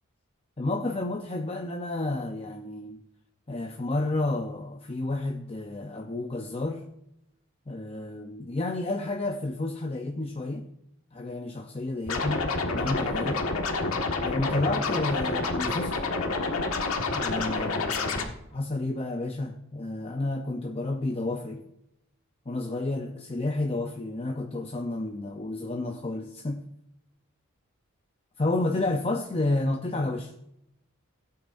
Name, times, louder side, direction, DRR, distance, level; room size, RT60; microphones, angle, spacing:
voice 1, 0.6-3.0 3.5-6.9 7.7-10.7 11.1-12.5 12.7-13.5 14.2-16.1 17.1-21.7 22.5-26.6 28.4-30.3, left 2 dB, 25° left, 3 dB, 0.6 m, -31 dB
Scratching (performance technique), 12.1-18.2, left 3 dB, 80° left, 1.6 m, -28 dB
17.0 x 8.5 x 2.6 m, 0.83 s
head